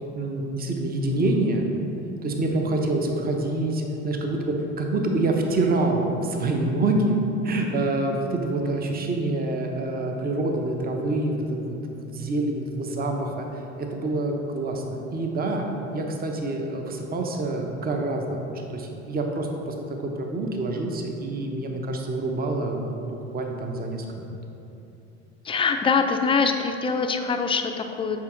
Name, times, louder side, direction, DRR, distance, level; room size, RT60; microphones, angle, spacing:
voice 1, 0.0-1.7 2.2-7.2 7.4-15.7 15.9-24.2, right 2 dB, 25° right, 2 dB, 0.9 m, -26 dB
voice 2, 25.4-28.2, left 5 dB, 15° left, 5 dB, 0.5 m, -23 dB
7.2 x 4.9 x 3.8 m, 2.9 s
hypercardioid pair, 70°, 35 cm